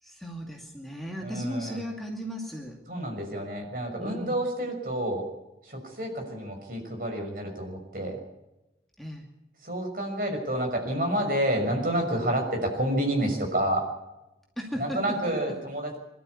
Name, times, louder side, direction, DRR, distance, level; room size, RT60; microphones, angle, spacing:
voice 1, 0.0-2.8 4.0-4.4 9.0-9.3 14.6-15.3, equal, ahead, 0 dB, 2.5 m, -36 dB
voice 2, 1.2-1.8 2.9-5.3 5.6-8.2 9.6-13.9 14.8-16.0, right 1 dB, 50° right, 2 dB, 6.3 m, -29 dB
24.0 x 12.5 x 9.7 m, 0.96 s
head